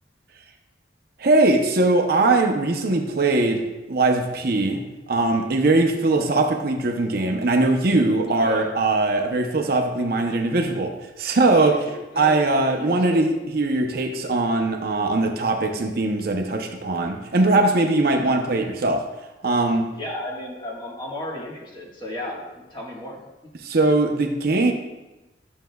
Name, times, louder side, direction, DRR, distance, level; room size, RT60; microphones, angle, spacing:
voice 1, 1.2-4.8 5.1-11.9 12.2-19.1 19.4-19.9 23.6-24.7, right 2 dB, 55° right, 3 dB, 0.7 m, -21 dB
voice 2, 8.3-8.7 11.7-12.3 12.7-13.3 19.9-23.3, left 1 dB, 25° left, -3 dB, 1.4 m, -34 dB
11.0 x 6.3 x 2.3 m, 1.0 s
head